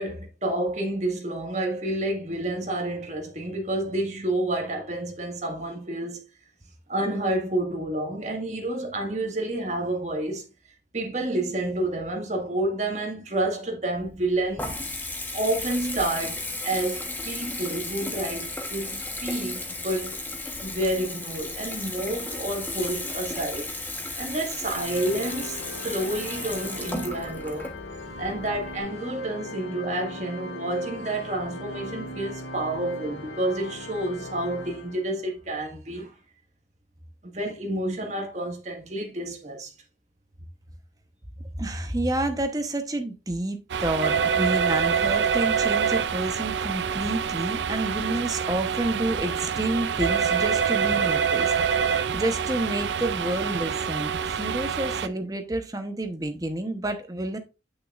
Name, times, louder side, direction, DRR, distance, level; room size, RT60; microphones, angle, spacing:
voice 1, 0.0-6.2 6.9-10.5 10.9-14.7 15.3-20.2 20.6-23.7 24.2-27.7 28.2-36.2 37.3-39.7, right 1 dB, 40° right, 1.7 m, -29 dB
Water tap faucet / Bathtub (filling or washing) / Trickle dribble, 13.9-28.8, left 2 dB, 10° left, 1.1 m, -35 dB
Organ, 24.7-35.3, left 1 dB, 80° left, 1.1 m, -39 dB
voice 2, 41.6-57.4, right 1 dB, 20° right, 0.9 m, -29 dB
sound 1, 43.7-55.1, right 7 dB, 80° right, 0.4 m, -26 dB
8.6 x 6.4 x 2.4 m
head